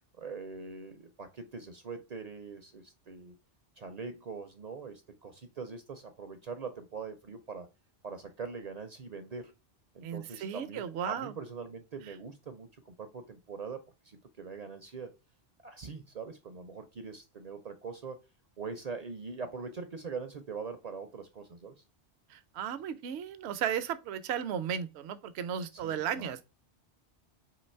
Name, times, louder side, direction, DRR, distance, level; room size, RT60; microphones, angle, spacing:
voice 1, 0.2-3.4 3.8-7.7 8.0-9.5 9.9-15.1 15.6-18.2 18.6-21.8 25.7-26.3, right 4 dB, 50° right, 0.5 m, -42 dB
voice 2, 10.0-11.3 22.3-26.4, right 8 dB, 70° right, 0.8 m, -35 dB
3.9 x 2.9 x 4.3 m
omnidirectional pair, 1.2 m